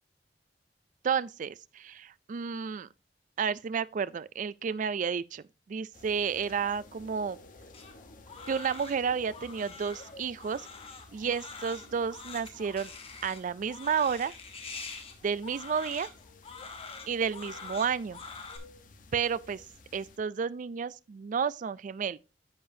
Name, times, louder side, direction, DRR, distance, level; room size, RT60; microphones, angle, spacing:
voice 1, 1.0-2.9 3.4-7.4 8.5-10.7 11.1-12.9 13.2-14.3 15.2-16.1 17.1-18.2 19.1-19.6 19.9-22.2, right 6 dB, 45° right, 0.3 m, -31 dB
sound 1, 5.9-20.2, left 3 dB, 50° left, 1.0 m, -54 dB
Crying sobbing, 7.7-18.6, left 4 dB, 35° left, 1.4 m, -45 dB
10.0 x 6.8 x 2.7 m
head